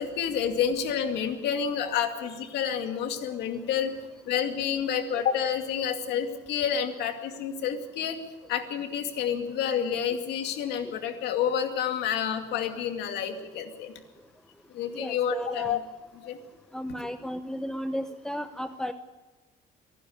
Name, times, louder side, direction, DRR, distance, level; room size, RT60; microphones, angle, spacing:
voice 1, 0.0-3.9 4.3-8.2 8.5-13.9 14.7-15.8 16.2-16.4, left 8 dB, 80° left, 5 dB, 2.4 m, -29 dB
voice 2, 14.9-15.8 16.7-18.9, equal, 5° left, 8 dB, 0.8 m, -34 dB
25.5 x 11.5 x 9.3 m, 1.2 s
cardioid pair, 110°, 17 cm